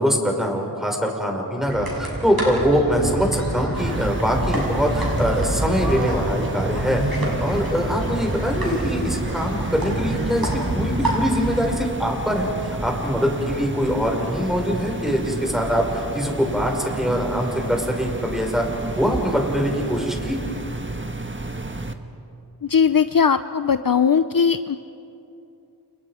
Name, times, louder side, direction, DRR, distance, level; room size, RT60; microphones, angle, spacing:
voice 1, 0.0-18.7 18.9-20.4, equal, ahead, 1 dB, 5.5 m, -23 dB
sound 1, 1.6-11.7, right 1 dB, 60° right, 7.3 m, -27 dB
sound 2, 3.8-21.9, right 2 dB, 30° right, 1.6 m, -31 dB
voice 2, 22.6-24.8, left 6 dB, 55° left, 11 dB, 0.7 m, -19 dB
30.0 x 29.5 x 5.0 m, 2.7 s
wide cardioid pair, 50°, 41 cm